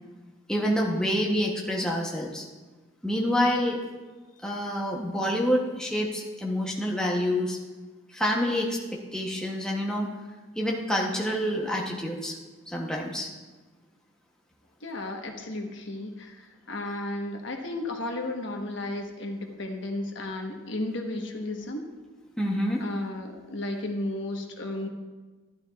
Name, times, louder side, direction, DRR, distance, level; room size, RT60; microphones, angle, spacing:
voice 1, 0.5-2.4 3.0-3.8 4.4-7.6 8.1-8.8 9.1-10.1 10.6-12.3 12.7-13.3 22.4-22.8, equal, 5° left, -2 dB, 0.8 m, -27 dB
voice 2, 14.8-21.8 22.8-24.9, left 2 dB, 65° left, 2 dB, 1.2 m, -34 dB
12.0 x 12.0 x 2.4 m, 1.3 s
head